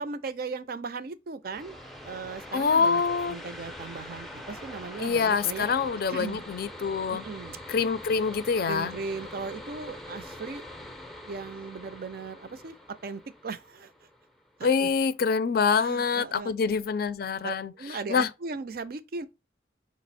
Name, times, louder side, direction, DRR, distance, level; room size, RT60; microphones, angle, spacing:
voice 1, 0.0-1.8 2.0-3.0 3.3-5.7 6.1-6.4 7.1-7.6 8.6-10.6 11.3-12.7 13.0-13.9 14.6-14.7 15.7-16.8 17.4-19.3, right 4 dB, 55° right, 0.4 m, -37 dB
sound 1, 1.4-14.8, left 1 dB, ahead, 0.5 m, -44 dB
voice 2, 2.5-3.4 5.0-7.2 7.7-8.9 14.6-17.7 18.1-18.3, left 5 dB, 55° left, 0.4 m, -25 dB
4.9 x 2.0 x 4.0 m
head